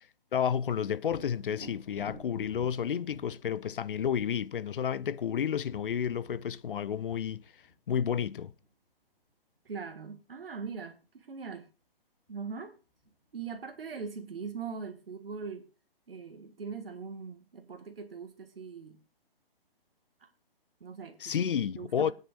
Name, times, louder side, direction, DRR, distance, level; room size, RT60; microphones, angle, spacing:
voice 1, 0.3-7.4 7.9-8.5 21.2-22.1, left 8 dB, 65° left, 0.7 m, -31 dB
Thunder, 1.0-8.7 12.3-12.4 12.9-13.8, left 1 dB, 35° left, 6.2 m, -52 dB
voice 2, 9.6-11.7 12.3-12.7 13.3-15.7 16.1-19.0 20.2-20.3 20.8-21.4 21.7-22.1, right 5 dB, 70° right, 1.8 m, -41 dB
20.0 x 9.4 x 2.5 m
figure-of-eight pair, 135°, 29 cm